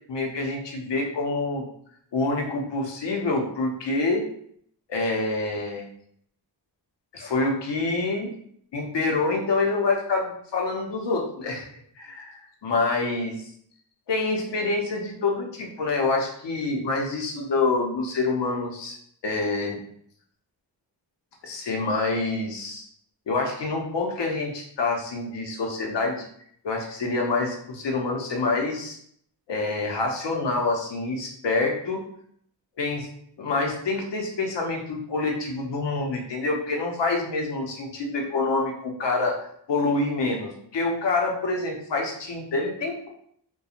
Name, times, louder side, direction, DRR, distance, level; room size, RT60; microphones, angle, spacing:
voice 1, 0.1-1.7 2.1-4.2 4.9-5.9 7.1-8.3 8.7-11.7 12.0-13.5 14.1-19.0 19.2-19.8 21.4-22.9 23.3-26.3 26.6-29.0 29.5-32.0 32.8-33.1 33.4-39.4 39.7-43.1, left 3 dB, 75° left, 1 dB, 0.7 m, -26 dB
2.4 x 2.2 x 2.8 m, 0.66 s
wide cardioid pair, 100°, 43 cm